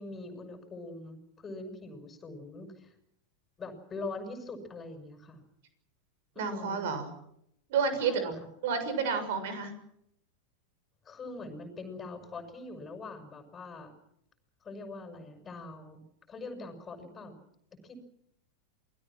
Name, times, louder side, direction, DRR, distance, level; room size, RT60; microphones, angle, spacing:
voice 1, 0.0-2.9 3.6-5.4 6.3-6.9 8.0-8.3 11.0-13.9 14.6-17.3 17.8-18.0, left 3 dB, 20° left, 7 dB, 6.4 m, -43 dB
voice 2, 6.3-7.1 7.7-8.3 8.6-9.7, right 5 dB, 55° right, 9 dB, 6.9 m, -30 dB
28.5 x 21.5 x 6.3 m, 0.74 s
figure-of-eight pair, 90°, 0 cm